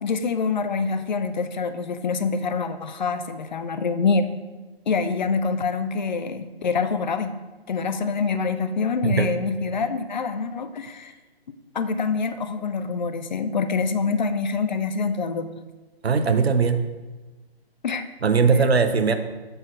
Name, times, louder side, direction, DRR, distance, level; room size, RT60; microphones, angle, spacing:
voice 1, 0.0-4.3 4.9-7.3 7.7-11.1 11.7-15.5 17.8-18.0, left 4 dB, 45° left, 10 dB, 0.4 m, -25 dB
voice 2, 9.0-9.3 16.0-16.9 18.2-19.1, right 5 dB, 75° right, 8 dB, 0.7 m, -20 dB
6.7 x 4.0 x 4.2 m, 1.2 s
figure-of-eight pair, 130°, 32 cm